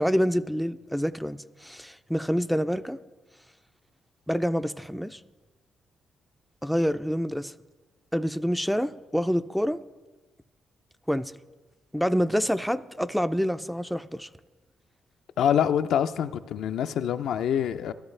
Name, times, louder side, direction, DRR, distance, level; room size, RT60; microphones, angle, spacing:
voice 1, 0.0-3.0 4.3-5.2 6.6-7.5 8.1-9.8 11.1-11.3 11.9-14.3, equal, ahead, 0.3 m, -27 dB
voice 2, 15.4-17.9, left 9 dB, 75° left, 0.4 m, -25 dB
13.0 x 12.5 x 3.3 m
cardioid pair, 90°, 0 cm